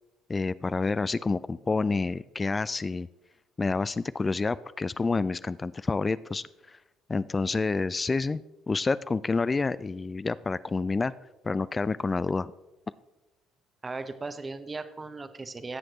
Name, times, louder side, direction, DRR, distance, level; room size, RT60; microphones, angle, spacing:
voice 1, 0.3-3.1 3.6-6.8 7.1-8.4 8.7-11.1 11.4-12.5, left 3 dB, 25° left, 17 dB, 0.3 m, -28 dB
voice 2, 13.8-15.8, right 3 dB, 25° right, 10 dB, 1.0 m, -37 dB
17.0 x 7.7 x 3.1 m, 1.0 s
hypercardioid pair, 55°, 0 cm